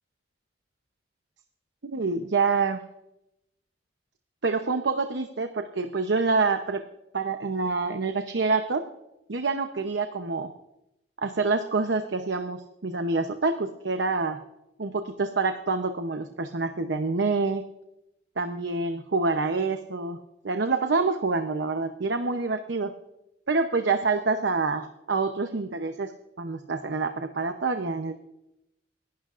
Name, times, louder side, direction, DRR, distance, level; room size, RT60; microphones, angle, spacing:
voice 1, 1.8-2.8 4.4-6.8 7.1-8.9 9.3-10.5 11.2-14.4 14.8-17.6 18.4-20.2 20.4-22.9 23.5-26.1 26.4-28.1, right 4 dB, 85° right, 7 dB, 0.8 m, -27 dB
28.0 x 11.5 x 2.5 m, 0.88 s
head